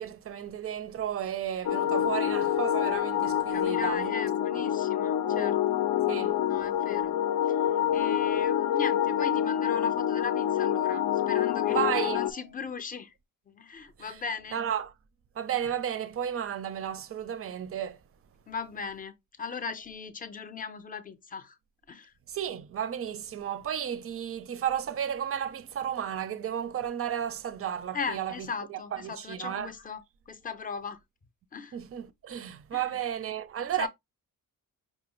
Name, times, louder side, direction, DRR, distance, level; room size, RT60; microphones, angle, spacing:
voice 1, 0.0-4.2 4.5-4.6 5.2-5.6 6.1-6.3 11.7-12.4 14.0-14.2 14.5-14.9 15.4-18.0 22.3-29.7 31.7-33.9, right 9 dB, 40° right, 0.4 m, -33 dB
sound 1, 1.6-12.3, left 10 dB, 70° left, 0.6 m, -27 dB
voice 2, 3.5-5.6 6.5-7.2 7.5-7.6 7.9-13.1 13.5-14.6 18.5-21.6 21.9-22.1 27.9-31.0 31.5-31.8 32.7-33.0 33.8-33.9, left 5 dB, 25° left, 0.5 m, -38 dB
5.4 x 2.5 x 3.0 m
wide cardioid pair, 175°, 35 cm